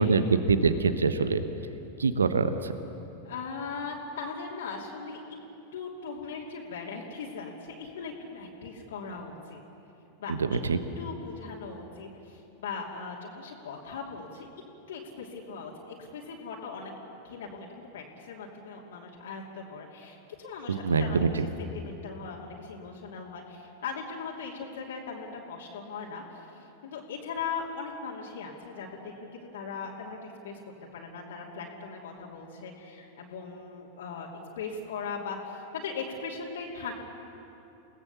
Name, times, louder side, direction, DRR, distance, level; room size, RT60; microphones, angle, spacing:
voice 1, 0.0-1.4 2.0-2.7 10.3-10.8 20.7-21.3, right 4 dB, 70° right, 11 dB, 1.1 m, -24 dB
voice 2, 3.2-5.2 5.7-9.6 10.2-10.3 11.0-14.5 14.9-30.6 30.9-36.9, left 5 dB, 60° left, -3 dB, 2.9 m, -39 dB
29.5 x 18.5 x 7.2 m, 3.0 s
figure-of-eight pair, 90°, 0 cm